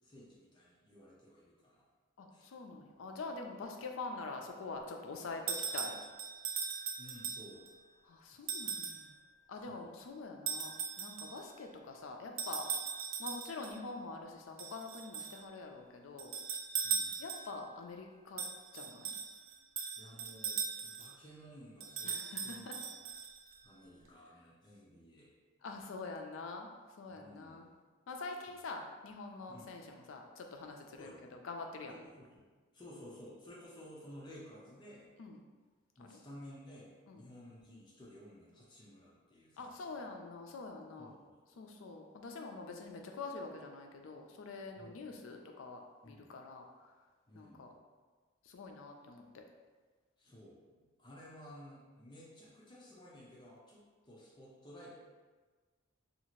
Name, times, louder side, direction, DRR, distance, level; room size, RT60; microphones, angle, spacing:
voice 1, 0.0-1.8 2.3-2.5 7.0-7.7 8.6-8.8 9.5-9.9 16.8-17.2 20.0-23.0 23.6-25.3 27.1-27.7 28.5-28.6 29.5-29.7 31.0-31.3 31.9-32.5 32.7-35.1 36.0-40.1 41.0-41.1 41.5-41.6 44.8-45.0 46.0-46.3 47.3-47.7 50.2-54.9, equal, 20° left, -5 dB, 0.5 m, -55 dB
voice 2, 2.2-6.0 8.1-9.1 9.5-12.6 13.2-16.3 17.2-18.4 18.7-19.1 22.0-22.8 25.6-26.7 27.0-27.7 28.1-31.1 31.4-31.9 35.2-35.4 36.0-36.2 37.1-37.2 39.6-41.2 41.6-46.7 47.3-47.7 48.5-49.4, left 3 dB, 75° left, 3 dB, 0.4 m, -45 dB
sound 1, 5.5-7.7 8.5-9.1 10.5-11.5 12.4-13.8 14.6-15.4 16.2-17.6 18.4-21.2 21.8-23.6, right 6 dB, 80° right, 0.3 m, -39 dB
2.7 x 2.4 x 3.0 m, 1.4 s
head